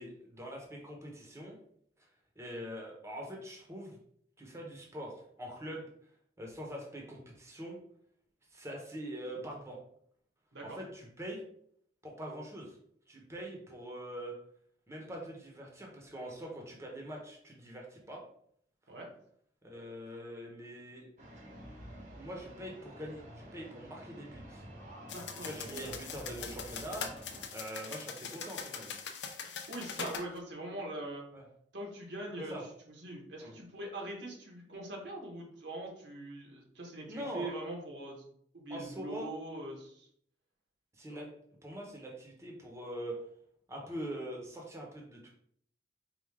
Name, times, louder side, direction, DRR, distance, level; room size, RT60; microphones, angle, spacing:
voice 1, 0.0-1.5 2.4-4.0 4.4-5.9 6.4-7.8 8.5-9.8 10.6-11.4 12.0-12.8 13.1-14.3 14.9-18.2 19.6-21.1 22.1-24.6 25.4-28.9 31.3-31.4 32.5-32.6 33.4-33.5 37.1-37.5 38.7-39.3 41.0-41.3 41.6-43.1 43.7-45.3, equal, 15° right, -1 dB, 0.9 m, -43 dB
sound 1, 21.2-27.5, right 1 dB, 45° right, 1.0 m, -49 dB
voice 2, 25.0-25.7 29.7-31.2 31.7-32.7 33.0-38.2 38.5-40.1 41.1-41.2, right 1 dB, 75° right, -1 dB, 1.3 m, -42 dB
sound 2, 25.1-30.3, left 6 dB, 75° left, 0.6 m, -42 dB
4.7 x 2.5 x 3.5 m, 0.65 s
head